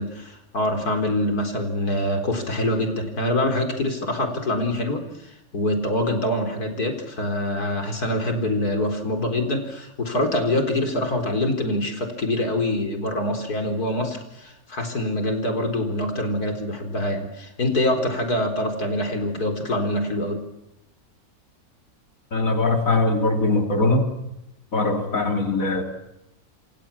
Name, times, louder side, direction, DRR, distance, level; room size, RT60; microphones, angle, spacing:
voice 1, 0.0-20.4, left 1 dB, 75° left, 5 dB, 4.8 m, -25 dB
voice 2, 22.3-24.1 24.7-25.8, left 2 dB, 60° left, 5 dB, 3.5 m, -21 dB
28.0 x 27.5 x 7.3 m, 0.88 s
omnidirectional pair, 1.6 m